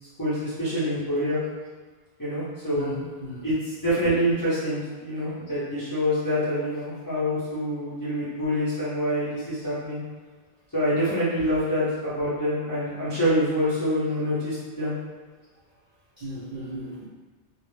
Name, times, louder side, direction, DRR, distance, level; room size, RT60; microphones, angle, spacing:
voice 1, 0.2-1.4 2.2-2.9 3.4-10.0 10.7-14.9, equal, 25° left, -12 dB, 0.5 m, -26 dB
voice 2, 2.7-3.5 16.2-17.1, equal, 50° right, -10 dB, 0.5 m, -35 dB
2.0 x 2.0 x 3.0 m, 1.4 s
omnidirectional pair, 1.1 m